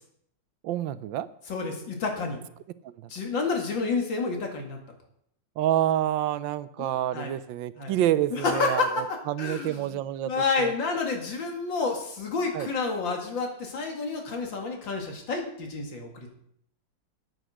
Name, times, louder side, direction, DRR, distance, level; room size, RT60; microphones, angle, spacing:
voice 1, 0.6-1.3 2.8-3.1 5.6-10.3 10.6-10.7 12.5-12.7, right 12 dB, 85° right, 15 dB, 1.3 m, -28 dB
voice 2, 1.5-2.4 3.1-4.8 6.8-7.3 7.8-7.9 8.3-9.0 9.4-10.0 10.2-16.3, left 4 dB, 80° left, 2 dB, 2.8 m, -29 dB
9.4 x 9.1 x 6.3 m, 0.71 s
omnidirectional pair, 2.0 m